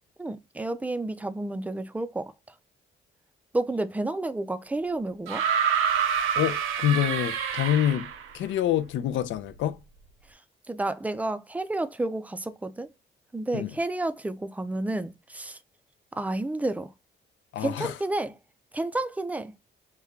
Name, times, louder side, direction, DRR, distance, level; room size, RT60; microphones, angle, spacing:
voice 1, 0.2-2.3 3.5-5.4 10.7-12.9 13.3-15.6 16.2-16.9 17.6-18.3 18.7-19.5, right 2 dB, 5° right, 0.4 m, -30 dB
sound 1, 5.3-8.3 9.6-9.7, right 7 dB, 85° right, 0.5 m, -27 dB
voice 2, 6.4-8.1 8.3-9.8 13.5-13.7 17.5-18.0, left 11 dB, 75° left, 0.4 m, -26 dB
3.2 x 2.2 x 3.6 m
cardioid pair, 90°, 20 cm